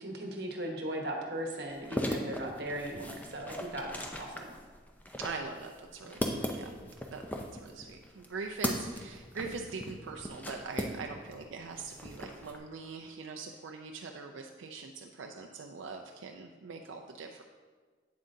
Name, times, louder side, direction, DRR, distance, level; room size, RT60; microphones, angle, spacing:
voice 1, 0.0-3.9 4.2-4.5, right 1 dB, 60° right, 1 dB, 1.1 m, -38 dB
sound 1, 1.7-11.4 11.7-12.6, left 1 dB, 10° left, 0.5 m, -38 dB
voice 2, 5.2-17.4, right 4 dB, 90° right, 3 dB, 0.4 m, -42 dB
8.4 x 7.4 x 2.7 m, 1.5 s
head